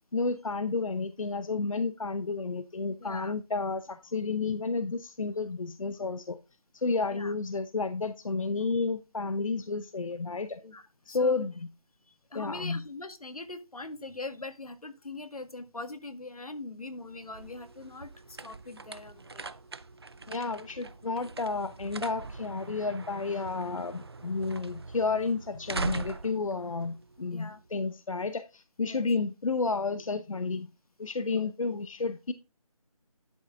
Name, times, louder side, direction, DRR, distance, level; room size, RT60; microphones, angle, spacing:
voice 1, 0.1-6.4 6.7-10.6 11.1-11.7 12.3-12.8 20.3-30.7 31.0-32.3, left 4 dB, 65° left, 0.7 m, -31 dB
voice 2, 3.0-3.3 7.1-7.3 10.6-11.5 12.1-19.5 27.3-27.6 28.8-29.1, left 2 dB, 85° left, 1.8 m, -42 dB
sound 1, 17.0-27.7, right 4 dB, 45° right, 0.5 m, -42 dB
11.5 x 5.8 x 3.6 m
figure-of-eight pair, 170°, 18 cm